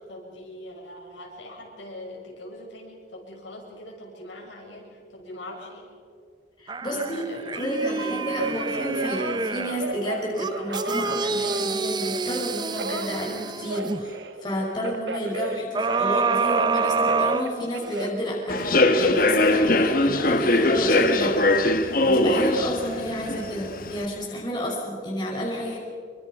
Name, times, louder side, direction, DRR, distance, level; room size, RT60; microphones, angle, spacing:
voice 1, 0.1-5.9 6.8-8.7, left 1 dB, 80° left, -1 dB, 6.6 m, -42 dB
voice 2, 6.6-7.2 7.5-21.4 22.0-25.8, equal, 25° left, -3 dB, 5.8 m, -30 dB
sound 1, 6.7-9.8 10.4-14.0 15.7-18.1 18.6-18.7, right 4 dB, 25° right, 0.6 m, -27 dB
Telephone, 8.0-12.3 12.8-16.2 16.5-19.0 19.5-20.0, right 3 dB, 70° right, 1.1 m, -36 dB
Human voice / Subway metro underground, 18.5-24.0, left 2 dB, 50° left, 1.4 m, -21 dB
27.5 x 24.5 x 5.6 m, 2.1 s
head